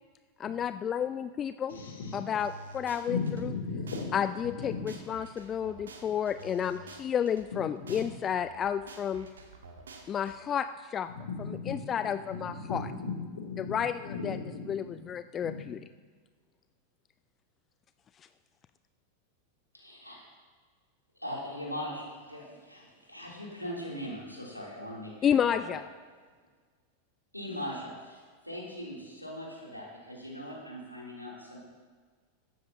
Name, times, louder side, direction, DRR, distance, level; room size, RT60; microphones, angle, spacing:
voice 1, 0.4-1.8 2.1-3.5 4.1-9.3 10.1-11.1 11.7-12.9 13.6-14.4 14.7-15.8 25.2-25.8, left 8 dB, 25° left, 12 dB, 0.3 m, -31 dB
voice 2, 1.7-2.2 3.1-4.1 4.4-4.9 7.5-8.0 11.1-11.8 12.3-13.8 14.0-14.6 15.4-15.5, left 4 dB, 65° left, 0 dB, 3.1 m, -36 dB
sound 1, 2.4-3.4 3.9-4.0 4.4-7.4 7.9-8.0 8.4-10.3, right 3 dB, 70° right, 1.4 m, -48 dB
voice 3, 19.7-20.2 21.2-25.8 27.3-31.6, equal, 90° left, -5 dB, 3.3 m, -40 dB
16.5 x 13.0 x 2.9 m, 1.5 s
figure-of-eight pair, 90°, 0 cm